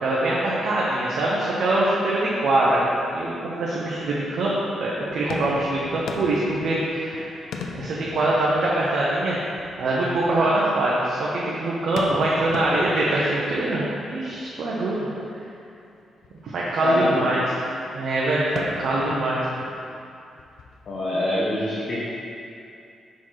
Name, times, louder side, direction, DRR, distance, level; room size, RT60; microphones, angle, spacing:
voice 1, 0.0-2.8 3.1-4.5 4.8-7.3 7.7-9.4 9.8-15.1 16.4-17.4 17.9-19.4, right 2 dB, 65° right, -6 dB, 0.9 m, -23 dB
sound 1, 4.0-4.5 4.9-10.9 11.7-14.3 14.6-14.8 15.5-15.6 15.8-15.9 16.2-16.5 17.0-17.6 18.3-21.2, left 5 dB, 80° left, 0.5 m, -39 dB
voice 2, 16.8-17.3 20.9-22.0, left 1 dB, 45° left, -8 dB, 1.1 m, -24 dB
5.7 x 4.2 x 4.7 m, 2.6 s
cardioid pair, 125°, 0 cm